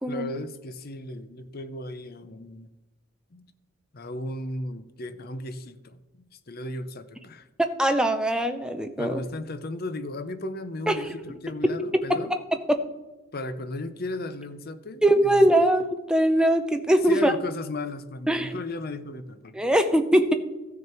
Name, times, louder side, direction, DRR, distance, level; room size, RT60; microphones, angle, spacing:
voice 1, 0.1-2.7 3.3-3.5 3.9-7.5 9.0-12.3 13.3-15.4 17.1-19.5, left 1 dB, 45° left, 11 dB, 0.6 m, -35 dB
voice 2, 7.6-9.2 10.9-11.0 12.1-12.8 15.0-17.3 18.3-18.6 19.5-20.3, right 1 dB, 5° right, 7 dB, 0.6 m, -22 dB
14.0 x 6.4 x 4.4 m, 1.1 s
head